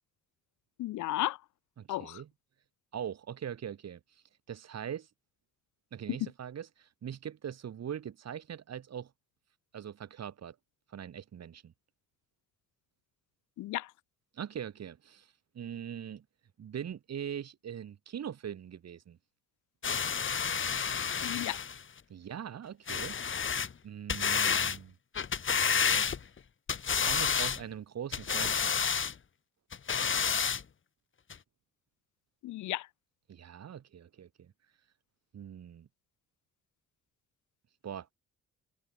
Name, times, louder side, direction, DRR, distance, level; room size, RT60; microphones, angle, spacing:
voice 1, 0.8-1.4 1.9-2.2 13.6-13.9 21.2-21.6 32.4-32.9, left 16 dB, 75° left, 0.7 m, -34 dB
voice 2, 1.8-2.3 2.9-4.0 4.5-5.1 5.9-9.1 9.7-10.6 10.9-11.7 14.3-16.2 16.6-19.2 22.1-23.5 23.8-24.9 25.5-26.1 27.0-28.9 33.3-34.5 35.3-35.9 37.8-38.1, right 9 dB, 60° right, 5.6 m, -42 dB
sound 1, 19.8-21.8 22.9-23.7 24.1-24.8 25.2-26.4 26.7-27.6 28.1-29.1 29.7-30.6 31.3-31.4, left 6 dB, 40° left, 2.6 m, -30 dB
cardioid pair, 90°, 30 cm